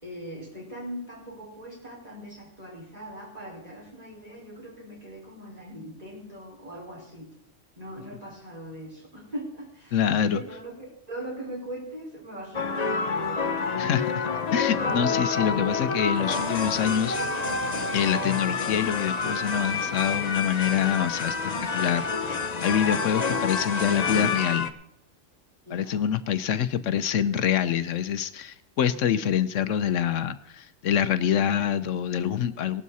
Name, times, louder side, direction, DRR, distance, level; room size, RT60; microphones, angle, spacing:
voice 1, 0.0-7.3 7.8-13.8 22.1-22.4 25.7-26.1, right 1 dB, 30° right, -3 dB, 5.2 m, -40 dB
voice 2, 9.9-10.4 13.8-17.2 17.9-24.7 25.7-32.8, left 9 dB, 80° left, 13 dB, 1.1 m, -26 dB
sound 1, 12.5-24.7, left 4 dB, 35° left, 0.9 m, -28 dB
18.0 x 12.0 x 4.1 m, 0.78 s
omnidirectional pair, 1.3 m